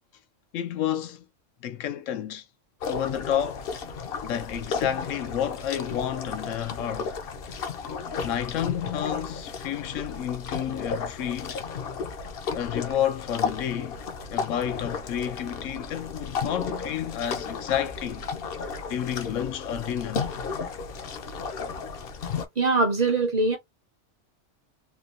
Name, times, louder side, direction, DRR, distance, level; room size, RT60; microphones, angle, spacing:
voice 1, 0.5-1.3 1.6-2.5 2.9-3.7 4.2-7.1 8.2-11.6 12.5-14.0 14.3-18.3 18.9-20.3, left 10 dB, 85° left, 1.0 m, -30 dB
sound 1, 2.8-22.5, left 5 dB, 60° left, 0.7 m, -34 dB
voice 2, 22.6-23.6, right 3 dB, 45° right, 0.6 m, -22 dB
3.5 x 2.3 x 2.4 m
omnidirectional pair, 1.3 m